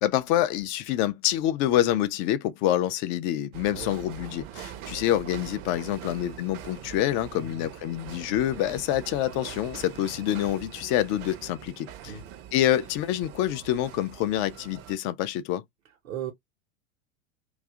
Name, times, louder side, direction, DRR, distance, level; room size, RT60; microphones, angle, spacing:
voice 1, 0.0-12.1 12.5-15.6, left 12 dB, 30° left, 0.4 m, -27 dB
sound 1, 3.5-15.0, right 10 dB, 35° right, 0.6 m, -43 dB
voice 2, 7.4-7.7 12.0-12.2 16.0-16.3, right 8 dB, 65° right, 0.8 m, -36 dB
2.6 x 2.4 x 3.5 m
hypercardioid pair, 95°, 40 cm